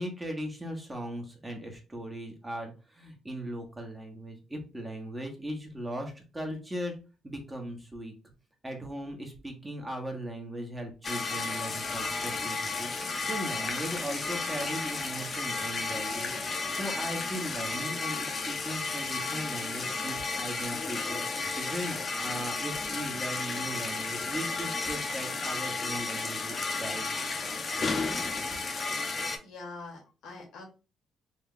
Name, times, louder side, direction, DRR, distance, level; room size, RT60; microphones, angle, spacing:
voice 1, 0.0-7.0 7.2-8.1 8.6-27.0, equal, 15° right, 2 dB, 1.0 m, -38 dB
sound 1, 11.0-29.4, left 4 dB, 40° left, 0.8 m, -33 dB
voice 2, 29.4-30.6, left 3 dB, 80° left, 1 dB, 1.4 m, -44 dB
3.2 x 2.3 x 3.8 m, 0.33 s
cardioid pair, 90°, 0 cm